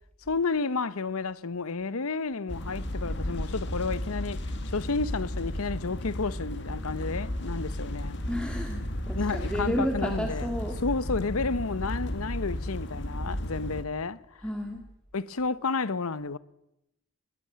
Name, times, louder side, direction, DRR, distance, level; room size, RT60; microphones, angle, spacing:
voice 1, 0.3-4.4 4.7-8.2 9.1-10.5 10.8-14.2 15.1-16.4, left 4 dB, 80° left, 0.8 m, -31 dB
sound 1, 2.5-13.8, left 1 dB, 55° left, 2.1 m, -34 dB
voice 2, 8.3-10.8 14.4-14.8, equal, 5° left, 1.9 m, -32 dB
20.5 x 18.5 x 8.7 m
head